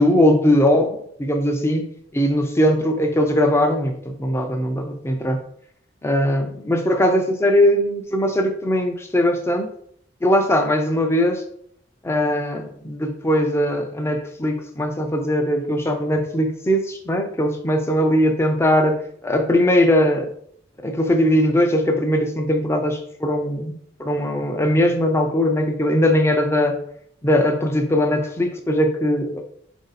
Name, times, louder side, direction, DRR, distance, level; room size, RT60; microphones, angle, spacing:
voice 1, 0.0-1.9 2.1-5.4 6.0-9.7 10.2-11.4 12.0-20.3 20.8-26.8 27.2-29.4, left 1 dB, 15° left, 5 dB, 0.4 m, -20 dB
3.8 x 2.6 x 4.0 m, 0.67 s
head